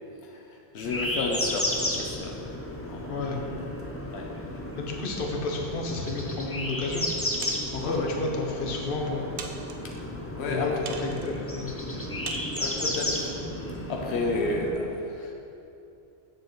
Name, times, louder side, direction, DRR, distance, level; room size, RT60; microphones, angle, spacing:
voice 1, 0.7-2.4 2.8-3.1 4.1-4.3 7.8-8.1 9.8-9.9 10.4-10.9 12.6-13.2 13.6-15.3, left 2 dB, 85° left, 0 dB, 1.0 m, -31 dB
sound 1, 0.8-14.7, left 1 dB, 15° left, 0.5 m, -33 dB
voice 2, 3.1-3.4 4.8-7.1 7.7-9.3 10.4-10.7 11.0-12.0, left 3 dB, 60° left, 0 dB, 1.0 m, -32 dB
sound 2, 7.4-8.0 8.7-8.8 9.4-10.0 10.9-11.4 12.3-12.8, right 6 dB, 85° right, 0.9 m, -40 dB
7.9 x 6.9 x 3.1 m, 2.7 s
omnidirectional pair, 1.1 m